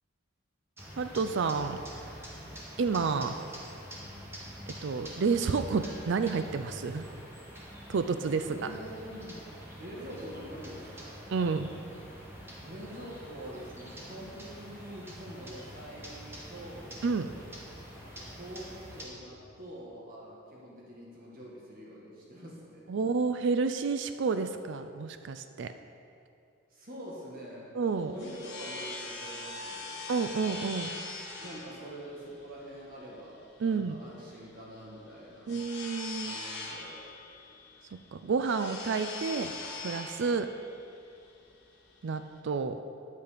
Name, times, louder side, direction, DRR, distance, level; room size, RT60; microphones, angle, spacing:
sound 1, 0.8-19.1, equal, 10° right, 1.6 m, -46 dB
voice 1, 1.0-1.8 2.8-3.3 4.8-7.0 7.9-8.6 11.3-11.7 17.0-17.3 22.9-25.7 27.7-28.1 30.1-30.9 33.6-34.0 35.5-36.4 38.1-39.5 39.8-40.5 42.0-42.8, right 4 dB, 60° right, 9 dB, 0.4 m, -30 dB
voice 2, 8.4-9.4 9.8-11.2 12.6-17.0 18.0-22.9 26.7-27.7 28.0-30.1 31.4-35.5 36.2-37.1, equal, 45° right, -4 dB, 1.6 m, -45 dB
sound 2, 27.8-42.4, left 3 dB, 60° left, 1.6 m, -42 dB
10.5 x 8.4 x 5.0 m, 2.5 s
head